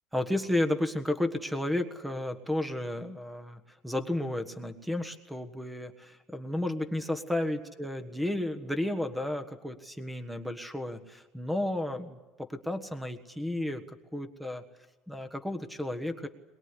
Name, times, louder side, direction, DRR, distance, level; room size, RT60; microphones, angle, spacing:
voice 1, 0.1-13.8 14.1-14.6 15.1-16.3, left 1 dB, 5° right, 9 dB, 1.4 m, -32 dB
22.5 x 21.5 x 9.8 m, 1.2 s
cardioid pair, 165°, 0 cm